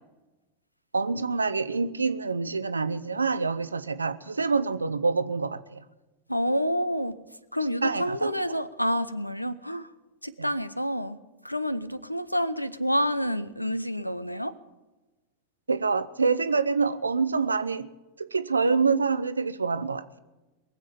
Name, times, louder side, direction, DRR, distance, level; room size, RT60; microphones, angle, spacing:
voice 1, 0.9-5.8 7.8-8.6 10.4-10.5 15.7-17.9 18.2-20.2, right 4 dB, 75° right, 14 dB, 0.6 m, -26 dB
voice 2, 6.3-7.2 7.5-9.9 10.2-11.2 11.4-14.5, equal, 90° left, 16 dB, 0.6 m, -28 dB
22.5 x 7.6 x 6.9 m, 1.1 s
figure-of-eight pair, 90°, 0 cm